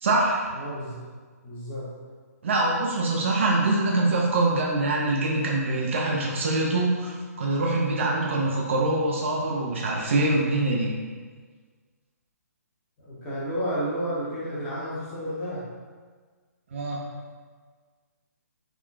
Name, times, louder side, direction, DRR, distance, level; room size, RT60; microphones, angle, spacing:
voice 1, 0.0-0.5 2.4-10.9 16.7-17.0, right 2 dB, 50° right, -3 dB, 0.5 m, -24 dB
voice 2, 0.5-1.0 1.4-1.9 13.0-15.6, equal, 20° left, -9 dB, 1.0 m, -31 dB
3.6 x 2.3 x 2.3 m, 1.5 s
figure-of-eight pair, 130°, 9 cm